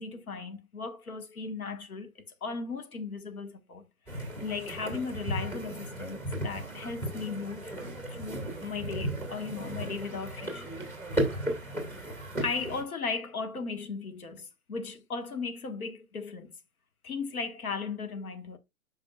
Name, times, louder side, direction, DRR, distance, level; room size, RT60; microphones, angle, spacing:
voice 1, 0.0-7.7 8.1-10.7 11.8-16.5 17.0-18.6, left 4 dB, 75° left, 1.7 m, -37 dB
sound 1, 4.1-12.8, right 1 dB, 5° left, 2.2 m, -35 dB
8.8 x 5.9 x 2.4 m
hypercardioid pair, 135°, 44 cm